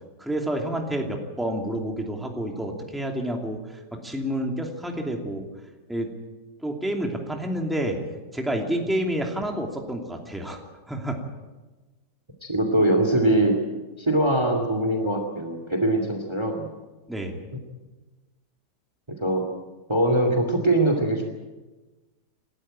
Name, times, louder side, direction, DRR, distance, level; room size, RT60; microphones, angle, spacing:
voice 1, 0.2-3.6 3.9-5.4 5.9-6.1 6.6-8.0 8.3-10.6 10.9-11.2 17.1-17.3, right 1 dB, ahead, 2 dB, 2.7 m, -29 dB
voice 2, 12.4-13.6 14.0-16.7 19.2-19.5 19.9-21.3, right 1 dB, 15° right, 4 dB, 2.4 m, -22 dB
28.5 x 13.0 x 8.9 m, 1.2 s
omnidirectional pair, 1.9 m